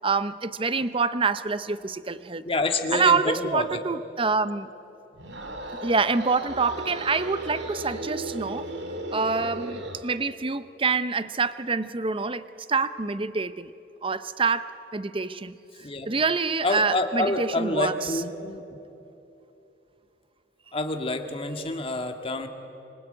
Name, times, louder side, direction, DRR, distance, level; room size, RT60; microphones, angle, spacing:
voice 1, 0.0-2.4 2.9-4.7 5.8-8.7 9.1-13.7 14.0-15.5 16.1-18.1, right 4 dB, 30° right, 13 dB, 0.7 m, -26 dB
voice 2, 2.4-3.8 15.8-16.1 16.6-18.6 20.7-22.5, left 2 dB, 30° left, 5 dB, 2.0 m, -27 dB
sound 1, 5.1-10.1, right 1 dB, 70° right, 2.5 m, -35 dB
25.5 x 25.5 x 8.9 m, 2.9 s
head